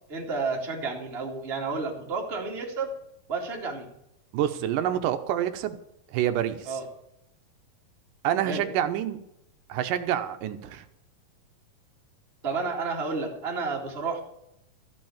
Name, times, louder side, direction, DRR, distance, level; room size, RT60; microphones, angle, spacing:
voice 1, 0.1-3.0 3.3-3.9 6.7-6.8 8.4-8.6 12.4-14.2, right 4 dB, 20° right, -1 dB, 2.0 m, -31 dB
voice 2, 4.3-5.8 6.1-6.8 8.2-9.2 9.7-10.8, right 10 dB, 70° right, 9 dB, 2.3 m, -27 dB
14.5 x 6.0 x 8.8 m, 0.81 s
omnidirectional pair, 4.4 m